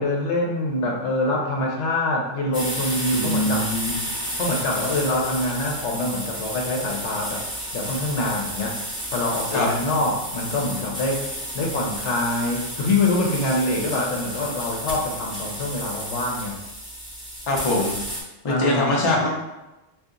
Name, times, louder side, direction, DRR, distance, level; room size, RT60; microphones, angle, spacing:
voice 1, 0.0-3.7 4.4-7.4 7.7-8.8 9.1-16.6 18.5-19.2, left 2 dB, 75° left, 0 dB, 1.0 m, -25 dB
sound 1, 2.5-18.2, equal, 5° right, 0.8 m, -32 dB
voice 2, 3.1-3.9 9.5-9.7 17.5-17.9 18.4-19.3, left 1 dB, 40° left, -2 dB, 0.5 m, -22 dB
2.8 x 2.4 x 3.6 m, 0.99 s
omnidirectional pair, 1.3 m